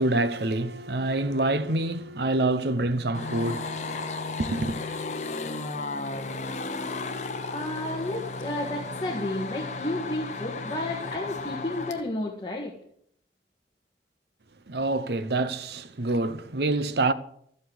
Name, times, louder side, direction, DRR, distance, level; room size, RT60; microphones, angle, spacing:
voice 1, 0.0-4.8 14.7-17.1, right 2 dB, 70° right, 0.8 m, -27 dB
sound 1, 3.1-12.0, left 3 dB, 40° left, 1.1 m, -34 dB
voice 2, 7.5-12.7, left 1 dB, 25° left, 1.7 m, -32 dB
13.5 x 8.1 x 7.8 m
head